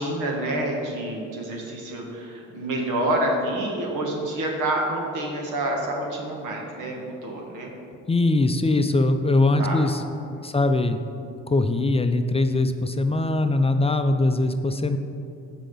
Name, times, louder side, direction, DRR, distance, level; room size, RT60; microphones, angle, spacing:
voice 1, 0.0-7.7 9.6-9.8 10.3-10.5, right 1 dB, 85° right, 0 dB, 1.8 m, -28 dB
voice 2, 8.1-10.0 10.4-11.0 11.5-15.0, left 2 dB, 20° left, 7 dB, 0.5 m, -21 dB
15.5 x 5.1 x 3.9 m, 2.6 s
cardioid pair, 90°, 30 cm